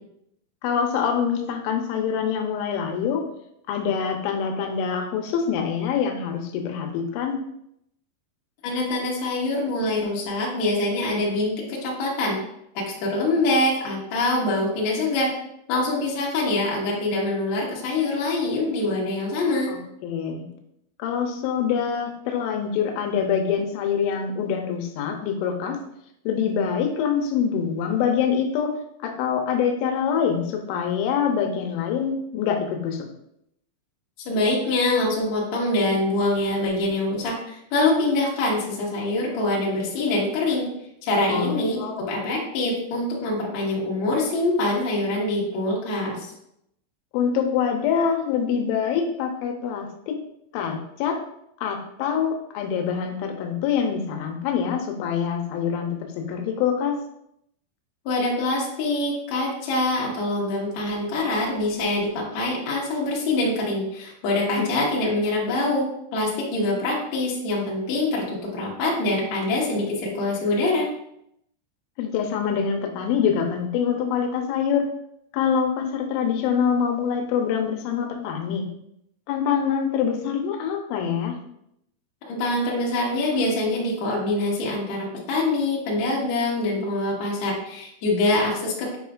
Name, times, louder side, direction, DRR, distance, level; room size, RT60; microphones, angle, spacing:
voice 1, 0.6-3.2 3.7-7.4 19.7-20.5 21.0-25.8 26.3-28.7 29.0-33.1 41.3-42.0 47.1-50.2 50.5-51.2 51.6-57.0 64.6-64.7 72.0-74.9 75.3-78.7 79.3-81.4, left 7 dB, 90° left, 4 dB, 3.1 m, -25 dB
voice 2, 8.6-12.4 12.7-15.3 15.7-19.7 34.3-40.7 41.0-46.3 58.1-65.9 66.1-70.9 82.3-89.0, left 2 dB, 60° left, -4 dB, 1.9 m, -24 dB
8.5 x 4.9 x 2.4 m, 0.77 s
omnidirectional pair, 5.4 m